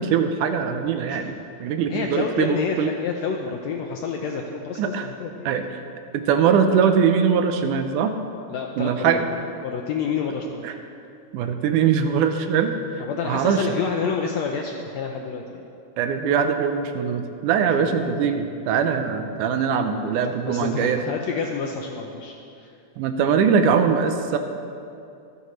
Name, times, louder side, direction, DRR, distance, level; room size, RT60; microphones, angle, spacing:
voice 1, 0.0-1.3 1.6-2.9 4.8-5.1 5.5-5.8 6.1-8.1 8.8-9.3 10.6-10.7 11.3-12.7 13.2-13.8 16.0-21.0 23.0-24.4, right 7 dB, 80° right, 7 dB, 2.0 m, -22 dB
voice 2, 1.9-5.5 8.5-9.4 9.6-10.6 13.0-15.6 17.8-17.9 20.4-22.3 22.6-22.7, left 5 dB, 85° left, 2 dB, 1.5 m, -29 dB
25.5 x 9.3 x 3.1 m, 2.6 s
omnidirectional pair, 3.9 m